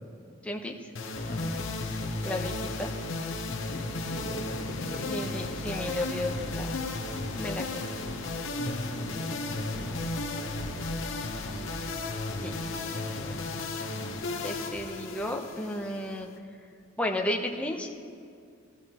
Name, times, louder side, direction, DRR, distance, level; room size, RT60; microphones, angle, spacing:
voice 1, 0.4-0.8 2.2-2.9 5.1-6.8 7.3-7.9 12.4-12.6 12.8-13.4 14.4-16.3 17.0-18.0, left 1 dB, 5° left, 1 dB, 0.7 m, -34 dB
sound 1, 0.9-16.3, left 2 dB, 65° left, 0.9 m, -34 dB
voice 2, 1.3-1.7 3.4-5.2 8.6-10.3, left 1 dB, 40° left, 1 dB, 1.1 m, -39 dB
14.5 x 14.5 x 2.9 m, 2.4 s
head